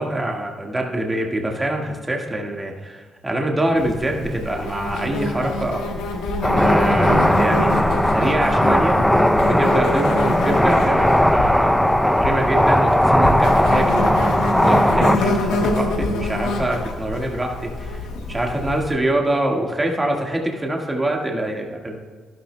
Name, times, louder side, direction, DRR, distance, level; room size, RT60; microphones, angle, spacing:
voice 1, 0.0-5.9 6.5-9.1 9.4-22.0, right 1 dB, 20° right, 1 dB, 1.6 m, -25 dB
Insect, 3.8-18.9, left 2 dB, 90° left, 1.3 m, -26 dB
sound 1, 6.4-15.2, equal, 5° left, 0.5 m, -17 dB
12.0 x 11.5 x 2.2 m, 1.5 s
supercardioid pair, 65°, 0 cm